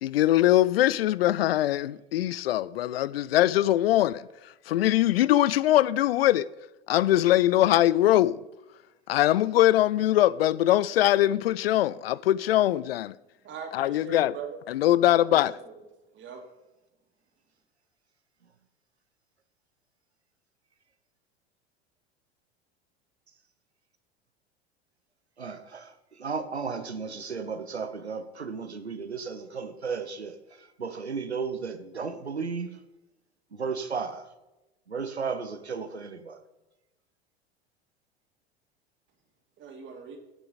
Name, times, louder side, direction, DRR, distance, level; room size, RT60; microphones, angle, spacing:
voice 1, 0.0-4.3 4.7-6.5 6.9-8.4 9.1-13.2 13.7-14.3 14.7-15.5, left 14 dB, 65° left, 0.4 m, -22 dB
voice 2, 13.4-14.6 15.0-15.9 16.1-16.4 39.6-40.2, right 6 dB, 35° right, 2.6 m, -41 dB
voice 3, 25.4-32.8 33.5-34.3 34.9-36.4, right 5 dB, 90° right, 0.8 m, -34 dB
16.0 x 6.7 x 4.1 m
figure-of-eight pair, 80°, 32 cm